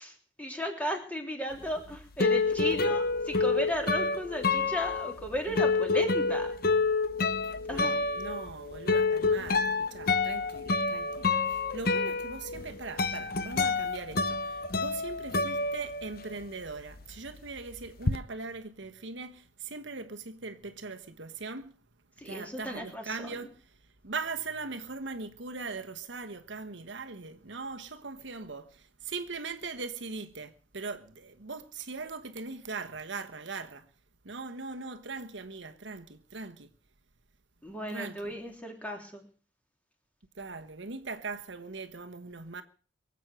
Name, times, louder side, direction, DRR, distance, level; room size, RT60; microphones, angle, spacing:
voice 1, 0.0-6.6 7.7-8.0 13.0-13.1 22.2-23.4 37.6-39.2, equal, 5° left, 3.3 m, -35 dB
sound 1, 1.6-16.4 16.7-18.2, left 4 dB, 50° left, 0.9 m, -28 dB
voice 2, 7.4-21.8 22.2-33.9 34.2-36.7 37.9-38.3 40.3-42.6, right 4 dB, 65° right, 1.2 m, -40 dB
23.5 x 8.3 x 6.4 m
head